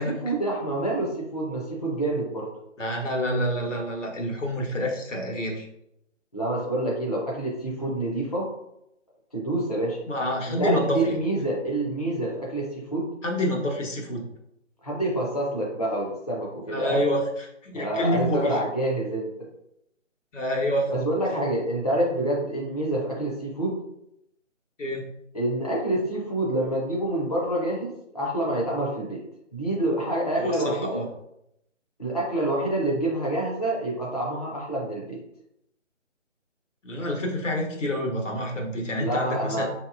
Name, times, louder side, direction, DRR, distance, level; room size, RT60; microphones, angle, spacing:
voice 1, 0.0-2.5 6.3-8.5 9.3-10.0 10.5-13.1 14.8-17.0 17.7-19.3 20.9-23.8 25.3-29.2 29.5-31.0 32.0-35.2 39.0-39.7, right 1 dB, 35° left, -4 dB, 0.6 m, -27 dB
voice 2, 2.8-5.7 10.1-11.1 13.2-14.3 16.7-18.6 20.3-20.9 24.8-25.1 30.4-31.1 36.8-39.7, equal, 80° left, 0 dB, 1.2 m, -27 dB
3.9 x 2.8 x 2.4 m, 0.79 s
hypercardioid pair, 180°, 37 cm